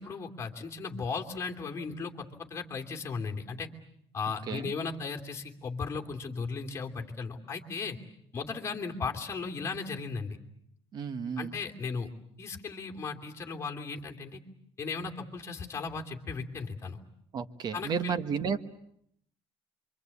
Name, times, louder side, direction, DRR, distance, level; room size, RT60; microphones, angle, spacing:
voice 1, 0.0-3.7 4.1-8.0 8.3-10.4 11.4-12.1 12.4-14.4 14.8-17.0 17.7-18.1, left 4 dB, 25° left, 2 dB, 2.7 m, -36 dB
voice 2, 10.9-11.6 17.3-18.6, right 6 dB, 40° right, 12 dB, 1.3 m, -32 dB
26.5 x 24.5 x 8.4 m, 0.71 s
cardioid pair, 150°, 10 cm